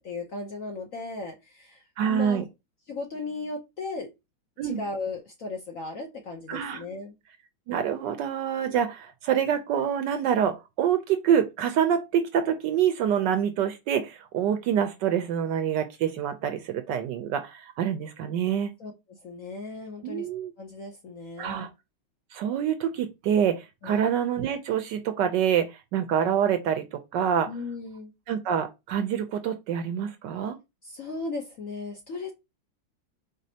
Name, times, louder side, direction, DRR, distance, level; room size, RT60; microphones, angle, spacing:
voice 1, 0.0-2.4 2.9-4.1 4.6-7.1 8.6-8.8 18.8-20.3 20.6-21.7 23.8-24.0 27.5-28.1 30.8-32.3, left 3 dB, 60° left, 0.9 m, -36 dB
voice 2, 2.0-2.4 4.6-4.8 6.5-6.8 7.7-18.7 20.0-20.5 21.4-21.7 22.3-27.5 28.3-30.6, right 8 dB, 70° right, 1.1 m, -26 dB
5.1 x 3.8 x 2.7 m
omnidirectional pair, 2.2 m